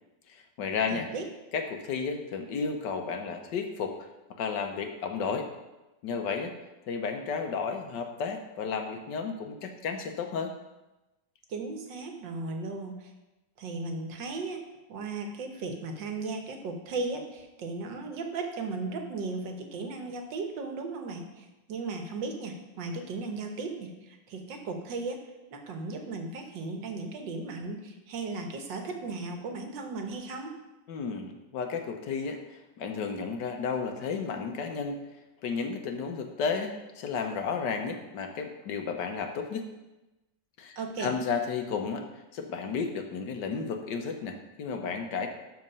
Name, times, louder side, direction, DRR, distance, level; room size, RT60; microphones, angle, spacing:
voice 1, 0.3-1.1 1.5-4.0 4.4-5.5 6.0-6.5 6.9-10.5 30.9-32.4 32.8-35.0 35.4-39.7 40.6-42.1 42.3-45.3, left 5 dB, 75° left, 5 dB, 1.6 m, -32 dB
voice 2, 0.9-1.3 11.5-13.1 13.6-14.6 14.9-25.2 25.5-30.6 40.8-41.1, right 3 dB, 80° right, 4 dB, 1.8 m, -36 dB
12.5 x 4.3 x 5.4 m, 1.0 s
omnidirectional pair, 2.0 m